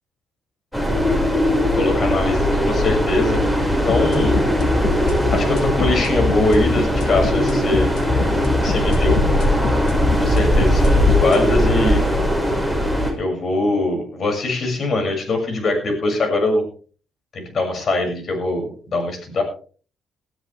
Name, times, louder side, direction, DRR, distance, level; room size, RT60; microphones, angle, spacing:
sound 1, 0.7-13.1, left 1 dB, 5° left, 5.7 m, -19 dB
voice 1, 1.6-3.4 3.8-4.3 5.3-7.9 8.6-9.2 10.2-12.0 13.2-16.6 17.3-19.4, left 2 dB, 50° left, 4 dB, 6.8 m, -22 dB
sound 2, 3.9-11.5, left 4 dB, 80° left, 2.6 m, -24 dB
19.0 x 13.0 x 3.5 m, 0.41 s
cardioid pair, 90°, 0 cm